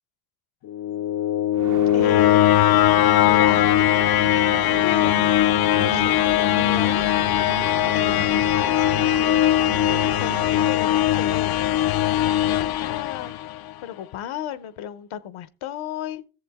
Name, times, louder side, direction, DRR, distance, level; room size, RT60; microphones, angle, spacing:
sound 1, 0.7-13.7, left 13 dB, 50° left, 0.5 m, -20 dB
sound 2, 1.5-10.8, right 8 dB, 40° right, 0.7 m, -35 dB
voice 1, 1.9-2.4 3.2-3.7 4.4-5.1 5.8-7.4 7.9-8.9 9.6-11.6 12.5-16.3, left 10 dB, 85° left, 1.0 m, -34 dB
15.5 x 7.2 x 3.5 m
cardioid pair, 80°, 47 cm